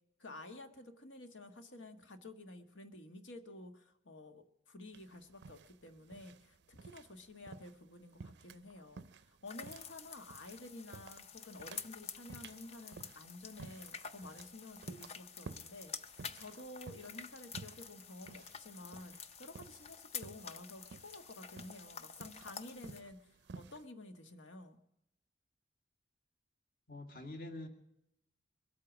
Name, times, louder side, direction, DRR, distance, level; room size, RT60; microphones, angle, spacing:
voice 1, 0.2-19.1 19.4-24.8, left 2 dB, 80° left, 7 dB, 1.6 m, -52 dB
sound 1, 4.9-23.8, right 4 dB, 60° right, 0.5 m, -54 dB
sound 2, 9.5-23.0, left 6 dB, 35° left, 0.5 m, -49 dB
voice 2, 26.9-27.7, left 2 dB, 50° left, 4 dB, 2.0 m, -45 dB
23.0 x 8.6 x 6.2 m, 0.80 s
head